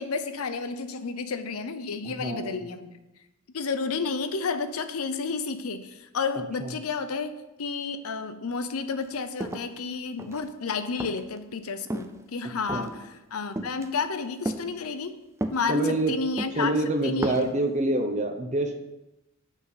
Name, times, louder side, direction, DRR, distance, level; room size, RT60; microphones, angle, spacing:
voice 1, 0.0-2.9 3.5-7.3 7.6-15.2 15.5-16.7 17.0-17.5, left 4 dB, 85° left, 10 dB, 0.7 m, -31 dB
voice 2, 2.0-2.6 6.6-6.7 12.7-12.9 15.7-16.1 16.5-18.7, right 1 dB, 35° right, 4 dB, 0.9 m, -26 dB
sound 1, 9.0-9.1 9.4-10.5 11.0-11.4 11.9-12.2 12.7-13.0 13.6-13.9 14.4-14.6 15.4-16.0 16.4-16.6 17.1-17.5, right 1 dB, 15° right, 0.4 m, -33 dB
6.4 x 5.3 x 5.7 m, 0.97 s
head